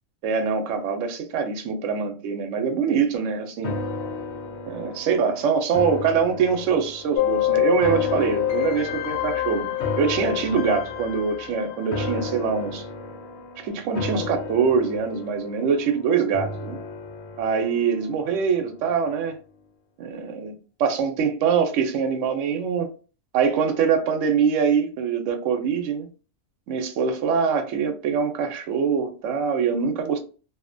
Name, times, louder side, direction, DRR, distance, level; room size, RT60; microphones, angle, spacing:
voice 1, 0.2-3.7 4.7-9.7 10.0-12.8 13.6-16.8 17.4-19.3 20.0-20.5 20.8-22.9 23.3-26.1 26.7-30.2, right 6 dB, 70° right, 0.9 m, -24 dB
sound 1, 3.6-18.9 19.3-19.4, left 3 dB, 65° left, 0.7 m, -34 dB
sound 2, 7.1-12.2, left 14 dB, 90° left, 1.0 m, -27 dB
2.7 x 2.1 x 2.5 m
omnidirectional pair, 1.4 m